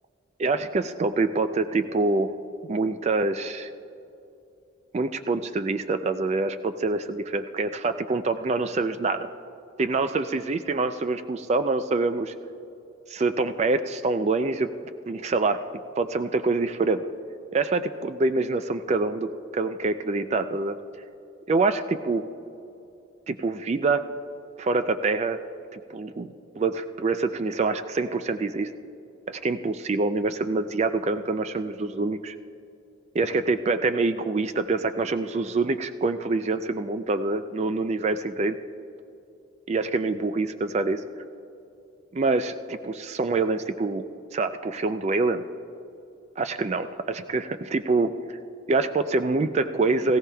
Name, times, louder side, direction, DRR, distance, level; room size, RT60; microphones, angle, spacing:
voice 1, 0.4-2.4 2.7-3.7 4.9-9.3 9.8-12.3 13.1-14.7 15.1-15.6 16.0-17.0 17.5-20.8 21.5-22.2 23.3-24.0 24.6-25.4 25.7-28.7 29.3-32.3 33.1-38.6 39.7-41.0 42.1-44.0 44.3-45.4 46.4-48.4 48.7-50.2, right 3 dB, 35° right, 10 dB, 0.3 m, -25 dB
18.0 x 16.0 x 2.3 m, 2.7 s
head